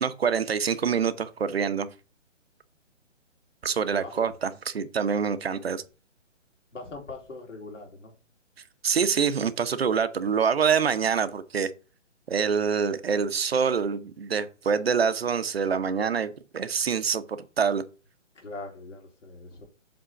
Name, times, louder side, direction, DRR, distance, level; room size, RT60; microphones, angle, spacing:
voice 1, 0.0-1.9 3.6-5.8 8.8-11.7 12.3-17.8, right 6 dB, 50° right, 0.8 m, -26 dB
voice 2, 4.0-4.3 6.7-8.1 18.4-19.7, left 3 dB, 70° left, 3.5 m, -41 dB
7.8 x 3.7 x 5.7 m
hypercardioid pair, 170°, 38 cm